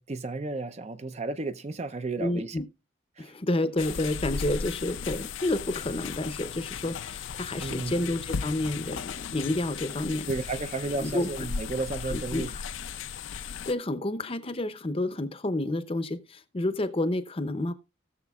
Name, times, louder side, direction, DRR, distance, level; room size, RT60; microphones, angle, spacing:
voice 1, 0.0-2.6 3.2-3.3 7.6-7.9 10.3-12.6, right 3 dB, 30° right, 0.5 m, -33 dB
voice 2, 2.2-2.7 3.2-10.3 11.0-11.3 12.0-12.6 13.4-17.7, left 1 dB, 30° left, 0.6 m, -30 dB
sound 1, 3.8-13.7, left 6 dB, 70° left, 0.5 m, -36 dB
19.0 x 6.6 x 2.3 m
head